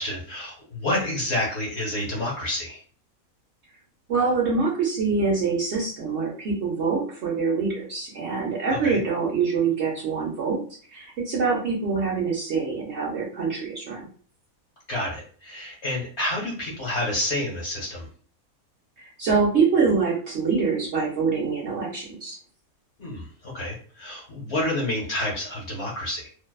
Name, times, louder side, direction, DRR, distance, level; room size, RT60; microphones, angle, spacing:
voice 1, 0.0-2.8 8.8-9.0 14.9-18.1 23.0-26.3, left 1 dB, 50° left, -3 dB, 1.1 m, -29 dB
voice 2, 4.1-10.6 10.9-14.0 19.0-22.4, right 5 dB, 55° right, -3 dB, 0.8 m, -25 dB
2.6 x 2.2 x 2.2 m, 0.43 s
omnidirectional pair, 1.6 m